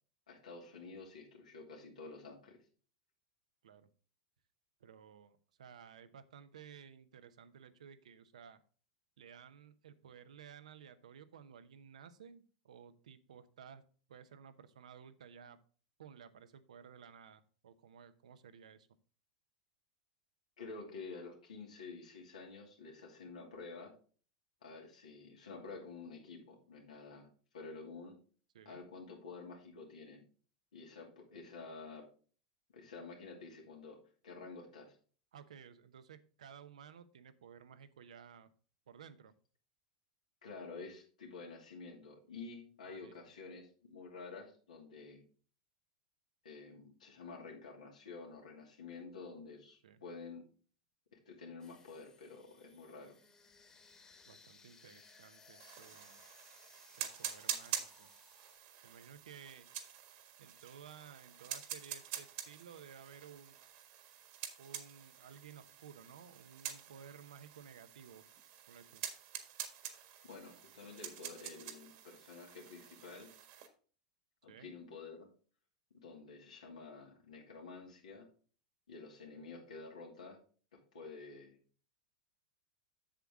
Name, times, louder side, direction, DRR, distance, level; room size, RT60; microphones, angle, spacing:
voice 1, 0.3-2.6 20.6-23.9 24.6-27.3 27.5-28.2 28.6-30.2 30.7-32.0 32.7-34.0 34.2-35.0 40.4-45.2 46.4-50.4 51.1-53.1 70.2-73.3 74.4-75.3 76.0-78.3 78.9-80.4 80.7-81.6, left 4 dB, 85° left, 0 dB, 2.5 m, -50 dB
voice 2, 4.8-8.6 9.2-13.8 14.1-15.6 16.0-18.9 28.5-28.8 35.3-38.5 38.9-39.3 42.9-43.1 49.8-50.0 54.3-56.2 57.0-58.1 58.8-59.7 60.4-63.6 64.6-68.3 68.7-69.0 74.5-74.7, right 7 dB, 85° right, 11 dB, 0.8 m, -55 dB
sound 1, 51.6-58.6, left 4 dB, 20° left, 1.5 m, -62 dB
sound 2, 55.6-73.7, right 10 dB, 60° right, 1.6 m, -47 dB
7.5 x 7.2 x 3.6 m, 0.41 s
hypercardioid pair, 105°, 4 cm